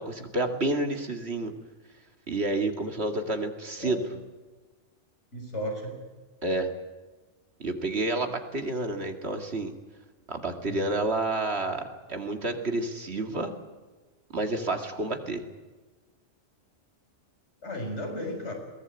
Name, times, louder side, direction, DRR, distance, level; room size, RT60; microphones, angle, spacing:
voice 1, 0.0-1.5 2.3-4.0 6.4-6.7 7.6-9.7 10.3-13.5 14.3-15.4, right 2 dB, 65° right, 5 dB, 2.5 m, -29 dB
voice 2, 3.8-4.2 5.3-6.0 10.7-10.9 17.6-18.5, left 1 dB, 75° left, 1 dB, 6.8 m, -35 dB
21.5 x 18.5 x 9.0 m, 1.3 s
omnidirectional pair, 1.2 m